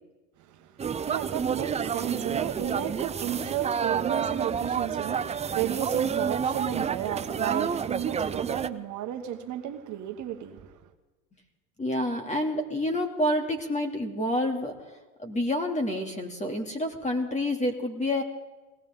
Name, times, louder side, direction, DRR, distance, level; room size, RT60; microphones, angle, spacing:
voice 1, 0.5-10.7, right 10 dB, 50° right, 1.5 m, -33 dB
sound 1, 0.8-8.7, right 7 dB, 15° right, 0.5 m, -29 dB
voice 2, 11.8-14.8 15.2-18.2, left 1 dB, 20° left, 2.7 m, -28 dB
21.5 x 18.0 x 3.8 m
supercardioid pair, 105°, 39 cm